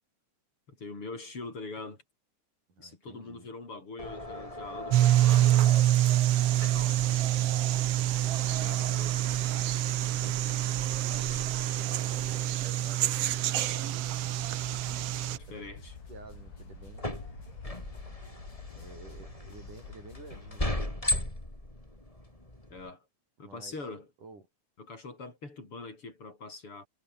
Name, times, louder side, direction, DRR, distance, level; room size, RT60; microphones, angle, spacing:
voice 1, 0.7-2.0 2.8-5.5 6.5-7.2 8.2-9.2 15.3-16.0 22.7-23.0 23.4-24.1 24.8-26.9, left 3 dB, 45° left, 8.3 m, -43 dB
voice 2, 2.7-3.5 10.9-14.0 15.5-15.6 16.1-17.1 18.7-21.0 23.4-23.7 24.2-24.5, right 3 dB, 80° right, 9.6 m, -52 dB
sound 1, 4.0-22.9, left 1 dB, 10° left, 4.7 m, -40 dB
sound 2, 4.9-15.4, right 13 dB, 65° right, 1.7 m, -26 dB
sound 3, 13.2-20.6, left 5 dB, 75° left, 6.2 m, -50 dB
omnidirectional pair, 3.5 m